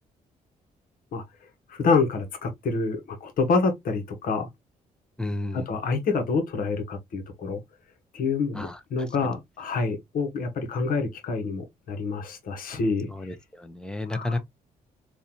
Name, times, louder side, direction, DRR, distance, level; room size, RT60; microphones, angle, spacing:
voice 1, 1.7-4.5 5.5-7.6 8.1-13.1 14.1-14.4, left 4 dB, 75° left, 1.2 m, -27 dB
voice 2, 5.2-5.6 8.6-8.8 13.2-14.4, left 2 dB, 5° left, 0.7 m, -31 dB
3.8 x 2.7 x 2.9 m
cardioid pair, 90°, 15 cm